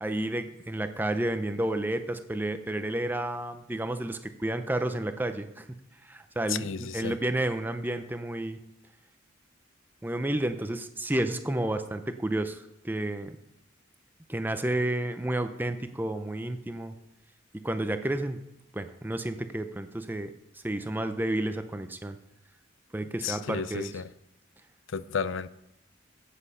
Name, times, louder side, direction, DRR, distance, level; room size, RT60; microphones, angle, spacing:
voice 1, 0.0-5.7 6.0-8.6 10.0-13.4 14.3-16.9 17.6-18.4 18.7-20.3 20.6-22.2 22.9-23.9, right 1 dB, 10° right, 0.5 m, -31 dB
voice 2, 6.5-7.2 23.2-24.0 24.9-25.5, left 6 dB, 75° left, 0.5 m, -32 dB
10.5 x 8.4 x 5.6 m
head